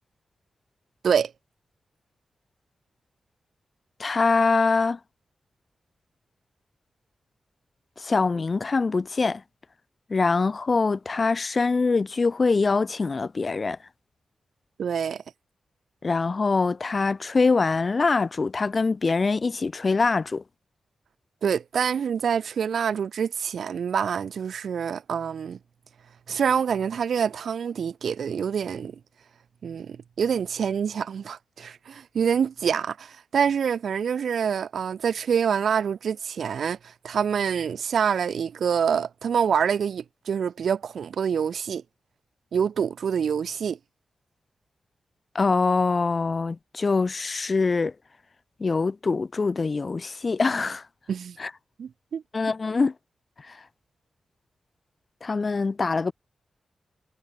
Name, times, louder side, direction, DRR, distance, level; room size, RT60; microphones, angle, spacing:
voice 1, 4.0-5.0 8.0-9.4 10.1-13.8 16.0-20.4 45.3-47.9 48.6-50.8 51.4-51.5 52.3-52.9 55.2-56.1, left 4 dB, 40° left, 0.5 m, -24 dB
voice 2, 14.8-15.2 21.4-25.6 26.3-28.9 29.6-41.8 42.5-43.8 51.1-51.4 51.8-52.2, right 7 dB, 80° right, 1.1 m, -26 dB
wide cardioid pair, 105°, 0 cm